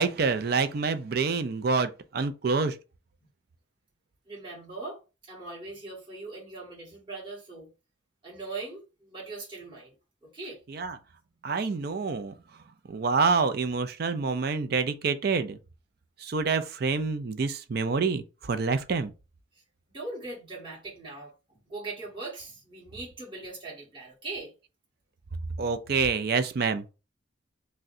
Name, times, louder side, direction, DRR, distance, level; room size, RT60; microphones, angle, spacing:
voice 1, 0.0-2.7 10.7-11.0 11.4-12.3 12.9-15.6 16.2-18.2 18.5-19.1 25.6-26.9, right 4 dB, 50° right, 0.4 m, -27 dB
voice 2, 4.2-5.0 5.3-7.7 8.2-9.9 10.2-10.6 19.5-19.6 19.9-24.5, right 3 dB, 25° right, 1.6 m, -40 dB
6.0 x 2.2 x 2.7 m
head